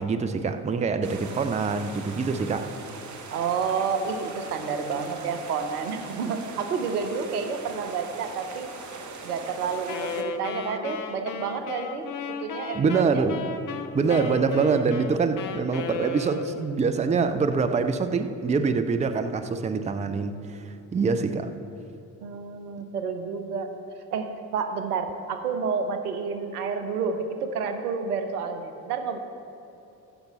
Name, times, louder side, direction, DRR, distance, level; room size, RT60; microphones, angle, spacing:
voice 1, 0.0-2.7 12.7-13.4 13.9-21.5, right 5 dB, 15° right, 0.5 m, -25 dB
sound 1, 1.0-10.2, right 4 dB, 40° right, 1.1 m, -41 dB
voice 2, 3.3-8.7 9.2-12.1 12.4-13.2 22.2-23.7 24.1-29.2, right 5 dB, 80° right, 0.8 m, -30 dB
Wind instrument woodwind instrument, 9.8-16.8, left 5 dB, 45° left, 0.8 m, -35 dB
8.9 x 5.9 x 6.6 m
figure-of-eight pair, 45°, 45 cm